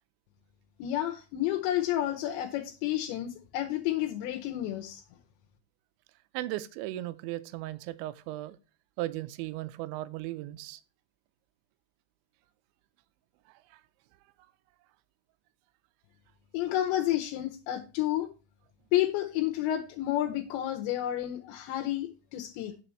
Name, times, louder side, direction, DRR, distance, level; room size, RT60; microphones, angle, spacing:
voice 1, 0.8-5.0 16.5-18.3 18.9-22.7, left 13 dB, 80° left, 3.0 m, -30 dB
voice 2, 6.3-8.6 9.0-10.8 13.5-13.8, right 16 dB, 85° right, 3.0 m, -37 dB
9.1 x 6.2 x 4.4 m
omnidirectional pair, 5.3 m